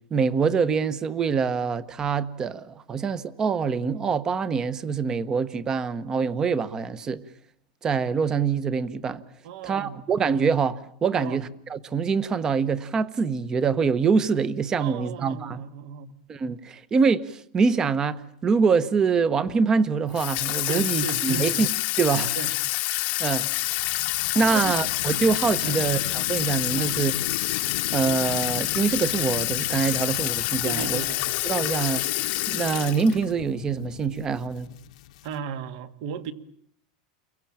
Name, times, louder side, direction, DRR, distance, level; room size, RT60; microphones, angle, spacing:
voice 1, 0.1-7.2 7.8-9.2 9.6-15.6 16.3-21.7 22.0-22.3 23.2-23.5 24.3-27.1 27.9-31.0 31.5-32.1 32.5-34.7, right 5 dB, 15° right, 1.1 m, -25 dB
voice 2, 9.4-10.0 11.1-11.4 14.8-16.1 20.7-21.5 22.4-22.5 24.4-24.7 25.6-25.9 26.8-27.0 30.6-31.4 35.2-36.3, right 7 dB, 55° right, 1.9 m, -34 dB
Water tap faucet / Sink (filling or washing), 20.1-33.3, left 20 dB, 40° left, 1.1 m, -27 dB
sound 1, 23.7-35.4, left 12 dB, 70° left, 1.4 m, -38 dB
29.5 x 23.0 x 8.8 m
supercardioid pair, 165°, 4 cm